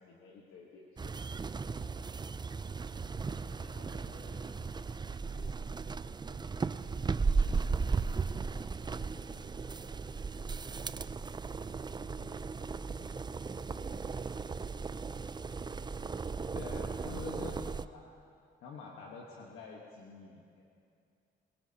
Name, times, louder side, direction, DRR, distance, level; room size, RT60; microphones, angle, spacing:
voice 1, 0.0-2.1 3.4-4.3 9.4-9.5 12.1-12.6 15.8-18.1 18.6-20.7, left 4 dB, 85° left, -1 dB, 1.3 m, -49 dB
sound 1, 1.0-17.8, right 4 dB, 20° right, 0.4 m, -36 dB
voice 2, 2.5-3.2 3.6-7.9 8.3-10.1 11.8-12.7 13.0-15.5, left 2 dB, 55° left, -2 dB, 3.4 m, -62 dB
22.0 x 18.5 x 2.8 m, 2.4 s
supercardioid pair, 55°, 21 cm